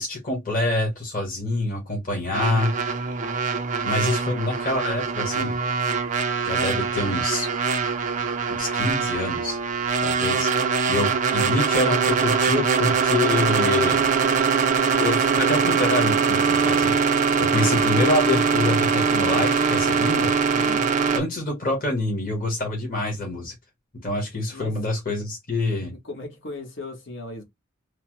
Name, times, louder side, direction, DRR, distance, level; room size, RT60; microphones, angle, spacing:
voice 1, 0.0-2.7 3.8-5.6 6.4-7.5 8.6-9.6 10.0-10.5 10.9-14.1 14.9-20.3 21.1-23.5 24.0-25.9, left 2 dB, 40° left, 1.1 m, -26 dB
sound 1, 2.3-21.2, right 5 dB, 35° right, 0.4 m, -22 dB
voice 2, 20.5-20.9 24.3-24.8 25.7-27.4, left 2 dB, 60° left, 0.9 m, -37 dB
3.1 x 2.0 x 2.9 m
head